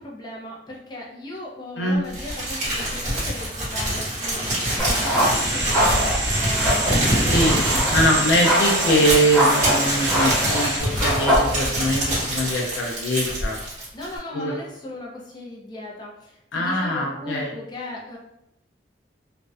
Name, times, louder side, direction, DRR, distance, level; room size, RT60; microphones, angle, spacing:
voice 1, 0.0-6.1 6.4-8.3 13.9-18.2, left 2 dB, 25° left, -3 dB, 0.4 m, -37 dB
Crumpling crinkling, 2.1-14.2, equal, 45° right, 1.1 m, -26 dB
sound 1, 4.8-12.0, right 1 dB, ahead, 0.9 m, -24 dB
sound 2, 5.2-10.8, right 2 dB, 70° right, 0.9 m, -27 dB
voice 2, 7.3-7.6 7.9-13.6 14.3-14.6 16.5-17.5, equal, 90° left, -2 dB, 0.4 m, -22 dB
2.5 x 2.1 x 2.3 m, 0.80 s
head